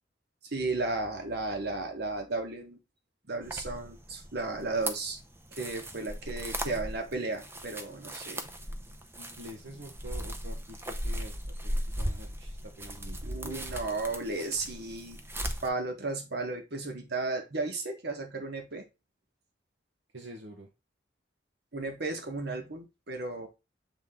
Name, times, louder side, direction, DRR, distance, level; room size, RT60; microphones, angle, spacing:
voice 1, 0.5-2.8 3.3-5.2 5.5-8.5 13.2-15.2 15.6-18.9 21.7-23.5, right 3 dB, 60° right, 4 dB, 1.5 m, -34 dB
sound 1, 3.4-15.7, equal, 15° right, 0.7 m, -37 dB
voice 2, 9.2-11.3 11.6-13.7 20.1-20.7, equal, 80° right, 0 dB, 1.1 m, -47 dB
7.4 x 3.7 x 3.7 m, 0.25 s
head